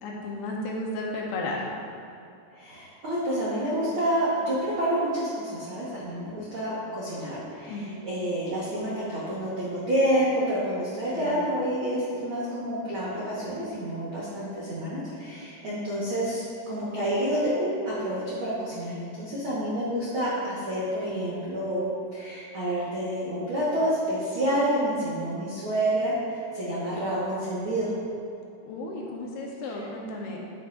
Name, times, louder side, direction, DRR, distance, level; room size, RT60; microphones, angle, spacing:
voice 1, 0.0-1.6 7.7-8.1 11.1-11.4 19.6-19.9 28.7-30.4, left 2 dB, 75° left, -2 dB, 2.7 m, -34 dB
voice 2, 2.5-21.8 22.1-27.9, right 1 dB, 65° right, -9 dB, 1.2 m, -28 dB
10.0 x 8.4 x 2.6 m, 2.6 s
omnidirectional pair, 4.6 m